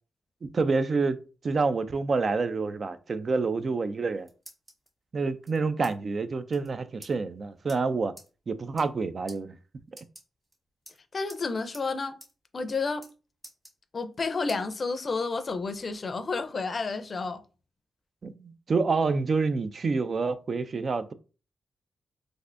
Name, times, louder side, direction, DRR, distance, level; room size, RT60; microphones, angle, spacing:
voice 1, 0.5-1.2 1.4-4.3 5.1-8.1 8.5-9.5 18.2-21.1, right 4 dB, 50° right, 0.3 m, -27 dB
sound 1, 4.0-4.9 5.4-5.9 6.2-6.3 6.5-6.7 7.0-7.1 7.7-7.8 8.2-8.3 8.7-9.0 9.3-9.4 9.9-10.5 10.9-11.4 11.7-11.9 12.2-12.3 12.6-13.1 13.4-14.1 14.5-14.6 15.1-16.0, right 1 dB, 20° right, 1.6 m, -50 dB
voice 2, 11.1-12.1 12.5-13.1 13.9-17.4, left 4 dB, 45° left, 0.4 m, -30 dB
3.2 x 2.5 x 2.5 m
cardioid pair, 60°, 0 cm